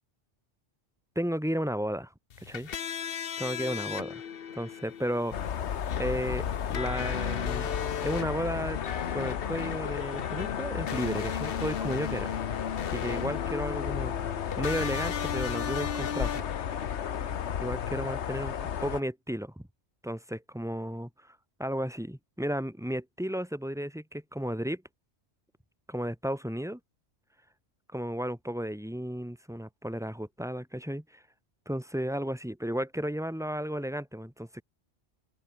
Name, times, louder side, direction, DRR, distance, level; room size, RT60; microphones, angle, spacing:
voice 1, 1.2-2.1 2.4-2.7 3.4-4.2 4.5-5.6 6.0-7.7 8.0-8.8 9.1-12.3 12.9-16.4 17.6-19.6 20.0-24.8 25.9-26.8 27.9-31.2 31.7-34.6, equal, 5° right, 2.5 m, -33 dB
sound 1, 2.3-17.5, left 8 dB, 60° left, 1.1 m, -37 dB
sound 2, 5.3-19.0, left 8 dB, 90° left, 1.2 m, -33 dB
open air
omnidirectional pair, 1.1 m